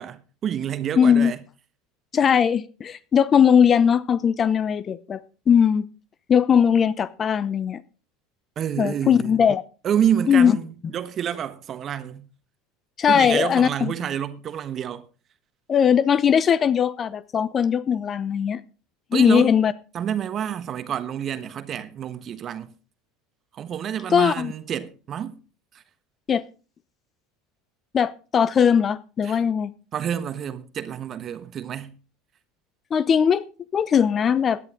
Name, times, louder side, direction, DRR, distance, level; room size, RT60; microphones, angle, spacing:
voice 1, 0.0-1.4 8.6-9.4 9.8-12.3 13.1-15.0 19.1-19.6 19.9-22.7 23.5-25.4 25.7-25.8 29.2-29.4 29.9-32.0, right 9 dB, 40° right, 1.2 m, -28 dB
voice 2, 1.0-1.3 2.1-5.2 5.5-5.8 6.3-7.8 8.8-9.6 10.3-10.5 13.0-13.9 15.7-18.6 19.1-19.7 24.1-24.5 26.3-26.4 27.9-29.7 32.9-33.4 33.7-34.6, left 7 dB, 35° left, 0.8 m, -19 dB
17.0 x 10.5 x 3.8 m
hypercardioid pair, 75°, 0 cm